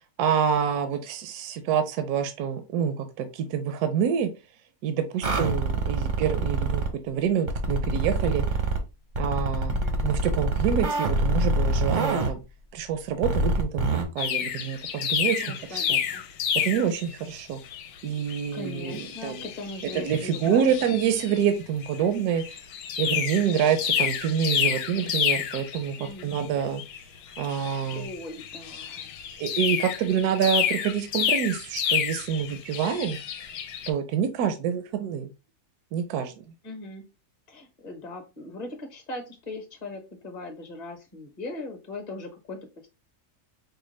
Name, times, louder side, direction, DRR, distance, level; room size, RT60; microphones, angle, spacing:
voice 1, 0.2-4.3 4.8-8.4 9.2-9.7 10.0-12.4 12.7-15.5 15.7-16.0 16.5-17.6 18.0-19.5 19.9-22.6 23.0-26.0 26.2-26.8 27.4-28.1 29.4-33.2 33.9-35.3 35.9-36.4, right 8 dB, 75° right, 8 dB, 1.1 m, -27 dB
sound 1, 5.2-6.9 7.5-8.8 9.2-12.3 13.2-14.0, right 2 dB, 45° right, 0.6 m, -25 dB
voice 2, 9.7-10.0 15.4-16.3 18.5-20.7 26.0-26.4 27.5-29.1 36.6-37.1 37.5-42.9, left 2 dB, 30° left, 5 dB, 0.8 m, -39 dB
sound 2, 14.2-17.2 17.7-17.9 18.2-21.5 21.8-22.0 22.4-33.9, left 8 dB, 75° left, 1.0 m, -30 dB
4.9 x 2.2 x 3.1 m, 0.27 s
omnidirectional pair, 1.7 m